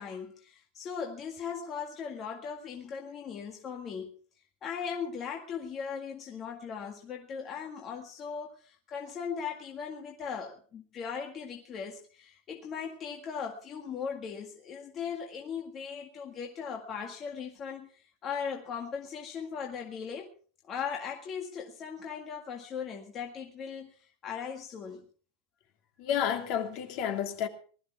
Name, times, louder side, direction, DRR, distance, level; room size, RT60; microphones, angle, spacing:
voice 1, 0.0-4.1 4.6-20.3 20.7-25.1, left 6 dB, 25° left, 1.8 m, -38 dB
voice 2, 26.0-27.5, left 9 dB, 40° left, 2.6 m, -30 dB
19.5 x 13.5 x 4.6 m
supercardioid pair, 175°, 0 cm